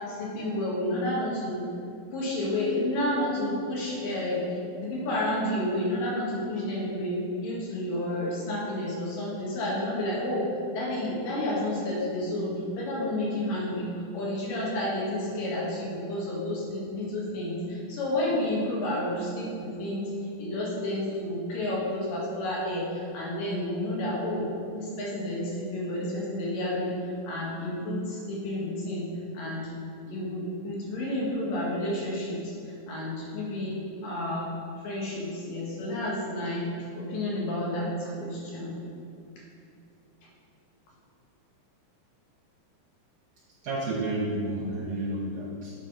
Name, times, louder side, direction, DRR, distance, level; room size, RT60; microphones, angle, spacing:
voice 1, 0.0-1.6 2.1-4.5 4.8-13.9 14.1-20.0 20.4-24.4 24.7-29.0 29.3-29.7 30.1-32.5 32.9-34.5 34.8-38.8, left 1 dB, 85° left, -5 dB, 3.3 m, -30 dB
voice 2, 43.6-45.7, right 1 dB, 70° right, -6 dB, 2.4 m, -31 dB
8.7 x 4.0 x 5.7 m, 2.5 s
omnidirectional pair, 3.8 m